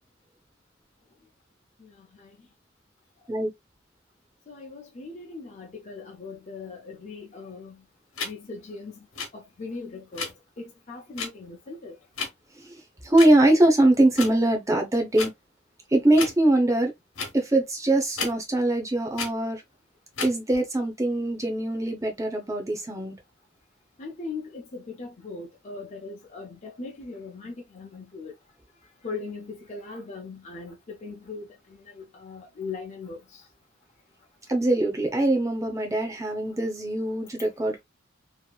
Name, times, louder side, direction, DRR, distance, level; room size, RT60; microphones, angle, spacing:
voice 1, 4.5-7.8 8.2-8.9 9.3-10.3 10.6-11.9 24.0-28.3 29.0-31.4 32.0-33.4, left 4 dB, 35° left, 0.5 m, -39 dB
sound 1, 8.2-8.3 9.1-9.3 10.1-10.3 11.2-11.3 12.1-12.3 13.2-13.3 14.1-14.3 15.1-15.3 16.1-16.4 17.2-17.3 18.2-18.3 19.1-19.3 20.1-20.3, left 5 dB, 90° left, 1.0 m, -31 dB
voice 2, 13.0-15.3 15.9-16.9 17.3-19.6 20.2-23.1 34.5-37.8, right 1 dB, 15° right, 0.8 m, -22 dB
2.9 x 2.6 x 2.3 m
head